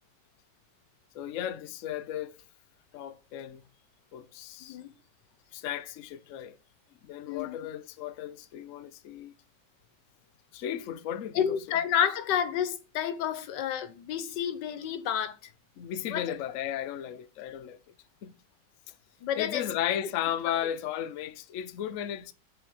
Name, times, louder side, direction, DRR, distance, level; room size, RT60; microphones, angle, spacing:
voice 1, 1.1-2.4 2.9-3.6 4.1-4.8 5.5-6.6 7.0-9.4 10.5-11.8 15.8-17.8 18.2-18.3 19.4-22.3, left 10 dB, 65° left, 0.8 m, -35 dB
voice 2, 4.6-4.9 7.3-7.6 11.3-15.4 16.1-16.3 19.2-19.6, left 9 dB, 80° left, 1.4 m, -30 dB
6.6 x 3.9 x 6.2 m
omnidirectional pair, 1.9 m